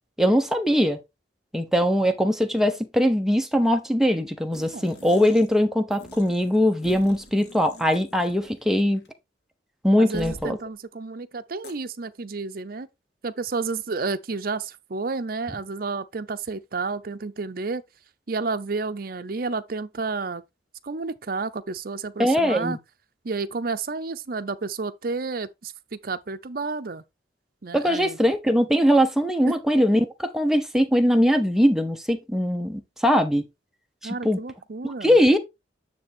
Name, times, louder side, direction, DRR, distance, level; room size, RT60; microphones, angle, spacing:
voice 1, 0.2-1.0 1.5-9.0 9.8-10.6 22.2-22.8 27.7-33.5 34.0-34.4 34.8-35.4, equal, ahead, 1.0 m, -21 dB
sound 1, 4.5-5.6 5.9-8.7 8.9-9.1 10.1-10.5 11.6-11.7, equal, 65° left, 1.9 m, -45 dB
voice 2, 10.0-12.9 13.2-17.8 18.3-20.4 20.8-22.8 23.2-27.0 27.6-28.2 29.5-29.6 34.0-35.2, right 4 dB, 55° right, 0.6 m, -31 dB
9.3 x 3.4 x 4.4 m
head